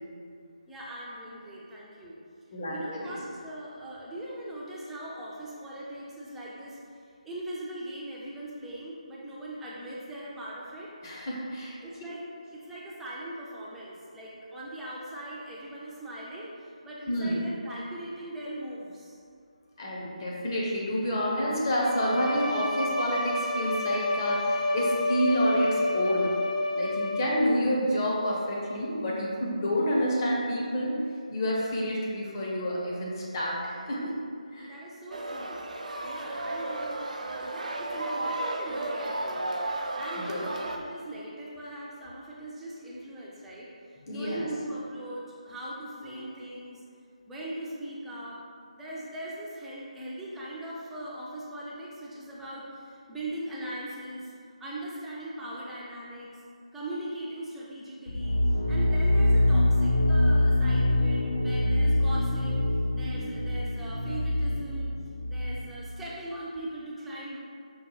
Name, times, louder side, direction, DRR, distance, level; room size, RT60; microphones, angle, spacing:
voice 1, 0.7-2.2 2.7-6.8 7.2-10.9 11.8-12.2 12.5-19.2 34.6-35.6 36.0-39.5 40.0-43.7 44.1-46.8 47.3-48.4 48.7-54.3 54.6-56.3 56.7-58.4 58.7-62.6 62.9-64.9 65.3-67.4, right 1 dB, 5° right, -7 dB, 0.4 m, -40 dB
voice 2, 11.0-11.8 17.1-17.4 19.8-26.3 26.8-31.0 31.3-34.1 34.5-34.7 40.2-40.5 44.1-44.5 46.1-46.3, equal, 30° left, -5 dB, 0.7 m, -29 dB
Bowed string instrument, 21.8-27.7, left 2 dB, 85° left, 0.5 m, -29 dB
sound 1, 35.1-40.8, right 2 dB, 80° right, 0.4 m, -33 dB
sound 2, 58.1-65.7, left 1 dB, 70° left, 1.0 m, -24 dB
5.2 x 2.2 x 3.0 m, 2.3 s
figure-of-eight pair, 155°, 4 cm